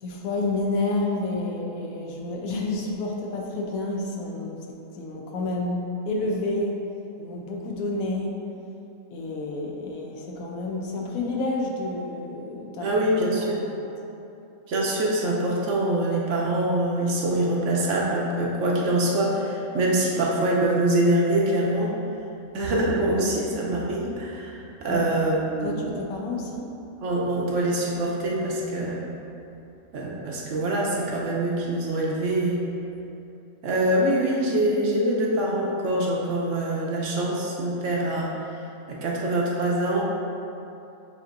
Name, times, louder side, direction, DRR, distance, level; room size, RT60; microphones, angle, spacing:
voice 1, 0.0-6.8 7.2-8.4 9.1-13.0 13.5-13.7 24.9-25.1 25.6-26.7, left 2 dB, 75° left, -1 dB, 1.1 m, -29 dB
voice 2, 12.8-13.6 14.7-21.9 22.5-25.9 27.0-29.0 29.9-32.6 33.6-38.3 38.9-40.0, right 1 dB, 65° right, -3 dB, 0.9 m, -24 dB
sound 1, 21.9-33.1, right 2 dB, 80° right, 1.2 m, -47 dB
7.6 x 2.8 x 2.5 m, 2.8 s
omnidirectional pair, 1.5 m